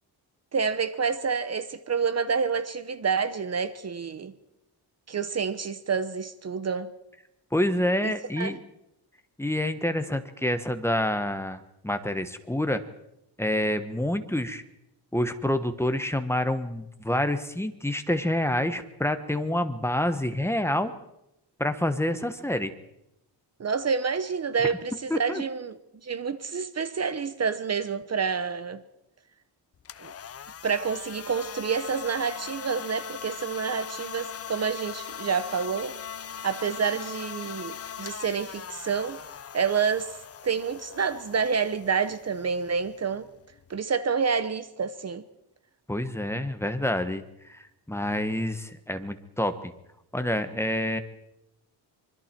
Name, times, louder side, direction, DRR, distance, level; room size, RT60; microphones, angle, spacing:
voice 1, 0.5-4.3 5.1-6.9 8.0-8.5 23.6-25.7 26.0-28.8 30.0-30.1 30.6-35.9 36.4-39.2 39.5-40.1 40.4-43.3 43.7-45.2, right 6 dB, 35° right, 0.9 m, -28 dB
voice 2, 7.5-8.6 9.4-12.8 13.4-14.6 15.1-20.9 21.6-22.7 25.1-25.4 45.9-47.2 47.5-49.7 50.1-51.0, left 1 dB, 5° left, 1.2 m, -27 dB
sound 1, 29.7-43.8, left 8 dB, 35° left, 0.7 m, -40 dB
25.5 x 24.5 x 4.5 m
wide cardioid pair, 150°, 43 cm